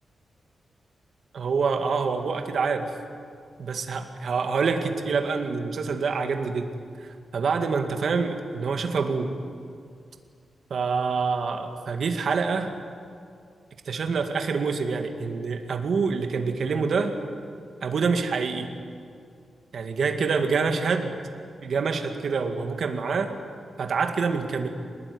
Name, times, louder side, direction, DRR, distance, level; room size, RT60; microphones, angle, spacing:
voice 1, 1.3-2.9 3.6-6.7 7.0-9.3 10.7-12.7 13.9-17.2 17.8-18.7 19.7-21.2 21.6-23.4 23.8-24.7, right 5 dB, 60° right, 5 dB, 2.2 m, -26 dB
24.0 x 20.0 x 9.8 m, 2.3 s
wide cardioid pair, 160°, 0 cm